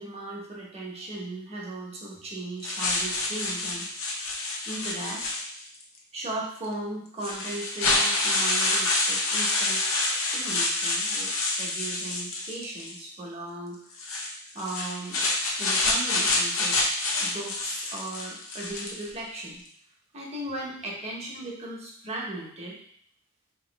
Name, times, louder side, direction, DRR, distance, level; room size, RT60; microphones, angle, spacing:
voice 1, 0.0-4.2 4.6-5.2 6.1-9.8 10.3-14.1 14.5-15.2 15.6-16.8 17.2-19.6 20.1-22.8, right 2 dB, 30° right, -3 dB, 1.0 m, -37 dB
sound 1, 2.6-5.8 6.6-6.7 7.2-13.0 13.9-19.1, left 2 dB, 70° left, 0.8 m, -27 dB
3.0 x 2.8 x 4.0 m, 0.63 s
head